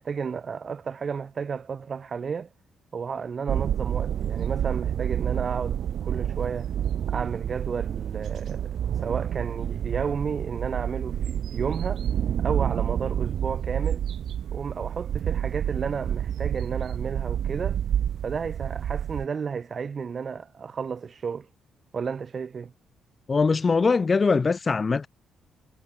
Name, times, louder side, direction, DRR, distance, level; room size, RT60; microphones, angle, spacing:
voice 1, 0.0-2.5 2.9-6.7 7.1-12.0 12.4-14.0 14.5-17.8 18.2-21.5 21.9-22.7, right 6 dB, 45° right, 5.1 m, -32 dB
sound 1, 3.5-19.3, right 9 dB, 65° right, 7.4 m, -29 dB
voice 2, 23.3-25.1, left 4 dB, 30° left, 1.0 m, -22 dB
cardioid pair, 90°, 0 cm